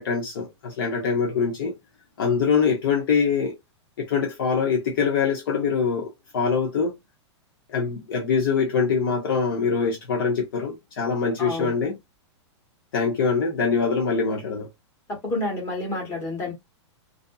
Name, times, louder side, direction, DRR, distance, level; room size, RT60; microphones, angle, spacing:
voice 1, 0.0-1.7 2.2-3.5 4.0-6.9 7.7-12.0 12.9-14.7, left 5 dB, 45° left, 0.7 m, -24 dB
voice 2, 11.4-11.7 15.1-16.5, left 2 dB, 15° left, 1.1 m, -29 dB
2.7 x 2.4 x 2.2 m
supercardioid pair, 180°, 16 cm